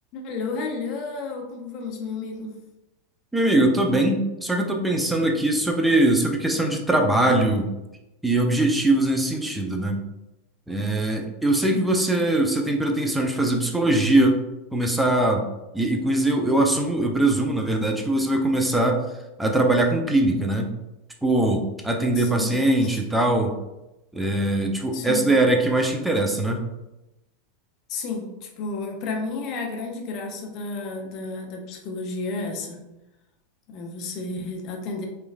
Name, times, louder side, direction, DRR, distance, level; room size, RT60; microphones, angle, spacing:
voice 1, 0.1-2.5 11.6-11.8 22.2-22.5 22.9-23.0 24.9-25.3 27.9-32.8 33.7-35.1, left 3 dB, 45° left, 2 dB, 0.6 m, -32 dB
voice 2, 3.3-7.7 8.2-10.0 10.7-14.4 14.7-15.4 15.7-19.0 19.4-20.7 21.2-23.5 24.1-26.6, right 1 dB, 5° right, 1 dB, 0.5 m, -21 dB
3.1 x 2.3 x 2.2 m, 0.96 s
hypercardioid pair, 95°, 0 cm